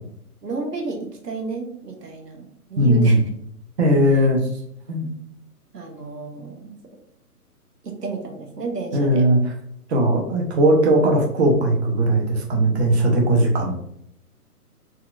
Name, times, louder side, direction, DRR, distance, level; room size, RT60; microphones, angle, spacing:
voice 1, 0.4-3.2 5.0-5.1 5.7-6.7 7.8-9.3, right 3 dB, 90° right, 3 dB, 0.9 m, -32 dB
voice 2, 2.8-3.2 3.8-4.5 4.9-5.1 8.9-9.4 9.9-13.8, right 1 dB, 45° right, 1 dB, 0.9 m, -18 dB
4.2 x 2.4 x 2.4 m, 0.73 s
figure-of-eight pair, 135°, 46 cm